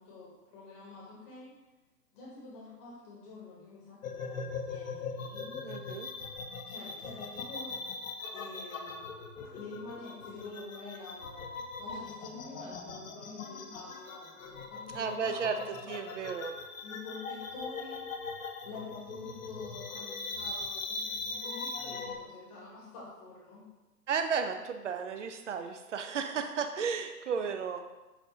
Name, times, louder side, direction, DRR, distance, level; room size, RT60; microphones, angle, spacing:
voice 1, 0.0-1.5 2.1-5.7 6.7-7.7 8.3-9.1 9.5-11.5 11.8-16.1 16.8-18.1 18.6-23.6, left 3 dB, 25° left, -5 dB, 1.0 m, -47 dB
sound 1, 4.0-22.2, left 4 dB, 60° left, 0.7 m, -40 dB
voice 2, 5.6-6.1 14.9-16.5 24.1-27.9, right 6 dB, 50° right, 7 dB, 0.5 m, -34 dB
7.0 x 2.6 x 2.8 m, 1.1 s
figure-of-eight pair, 130°, 48 cm